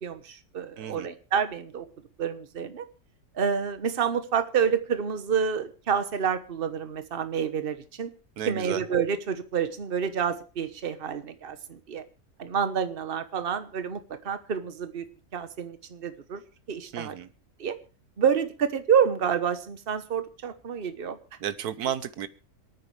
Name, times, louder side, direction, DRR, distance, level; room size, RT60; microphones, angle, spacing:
voice 1, 0.0-1.9 2.2-2.8 3.3-8.1 8.5-12.0 12.4-15.0 15.3-16.4 16.7-17.2 17.6-17.8 18.2-21.2, right 7 dB, 40° right, 10 dB, 1.2 m, -28 dB
voice 2, 0.8-1.1 8.4-8.8 16.9-17.3 21.4-22.3, right 9 dB, 75° right, 14 dB, 1.4 m, -32 dB
27.5 x 9.4 x 3.3 m, 0.33 s
omnidirectional pair, 1.7 m